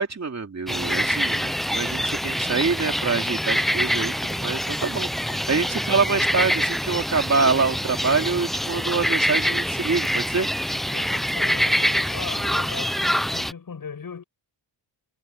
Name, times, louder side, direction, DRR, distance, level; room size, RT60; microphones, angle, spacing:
voice 1, 0.0-10.5, right 4 dB, 35° right, 3.0 m, -25 dB
sound 1, 0.7-13.5, equal, ahead, 0.5 m, -25 dB
voice 2, 10.9-14.2, left 5 dB, 50° left, 7.4 m, -38 dB
cardioid pair, 100°, 44 cm